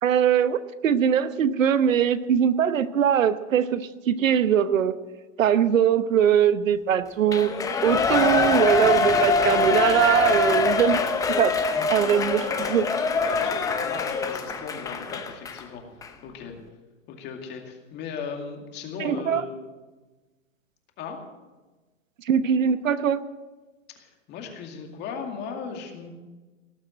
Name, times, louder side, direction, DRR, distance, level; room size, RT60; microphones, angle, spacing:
voice 1, 0.0-4.9 5.4-7.5 7.8-11.0 11.4-11.6 11.9-12.9 19.0-19.4 22.2-23.2, right 8 dB, 85° right, 13 dB, 1.0 m, -21 dB
Shout / Cheering, 7.3-15.6 16.0-16.1, left 4 dB, 10° left, 0.8 m, -24 dB
voice 2, 13.2-15.8 16.2-16.5 17.1-19.6 21.0-21.2 24.0-26.1, left 6 dB, 25° left, 3 dB, 2.3 m, -37 dB
18.5 x 7.3 x 8.0 m, 1.2 s
hypercardioid pair, 145°, 38 cm